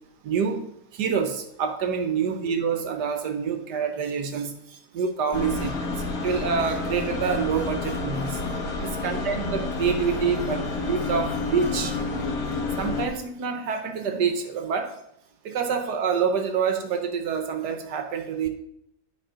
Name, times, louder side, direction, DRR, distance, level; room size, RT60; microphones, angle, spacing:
voice 1, 0.2-0.6 0.9-8.4 8.8-12.0 12.8-14.9 15.4-18.5, right 6 dB, 75° right, 6 dB, 1.5 m, -27 dB
sound 1, 5.3-13.1, left 3 dB, 60° left, 1.7 m, -29 dB
11.5 x 4.2 x 5.1 m, 0.75 s
omnidirectional pair, 1.8 m